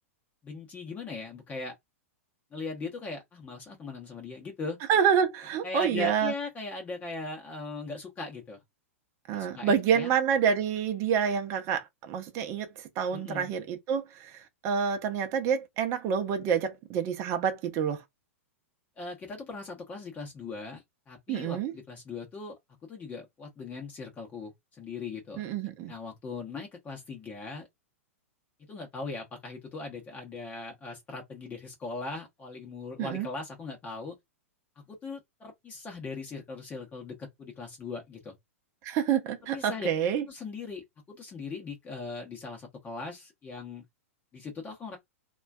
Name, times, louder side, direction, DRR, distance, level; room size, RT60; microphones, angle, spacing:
voice 1, 0.4-1.7 2.5-4.8 5.6-8.6 9.3-10.1 13.1-13.6 19.0-22.5 22.8-25.4 25.9-27.7 28.7-34.1 34.8-38.4 39.5-39.9 40.3-43.8 44.3-45.0, left 3 dB, 20° left, 0.7 m, -39 dB
voice 2, 4.9-6.3 9.3-18.0 21.3-21.7 25.4-25.9 33.0-33.3 38.8-40.2, right 7 dB, 40° right, 0.6 m, -28 dB
2.4 x 2.2 x 2.3 m
figure-of-eight pair, 105°, 8 cm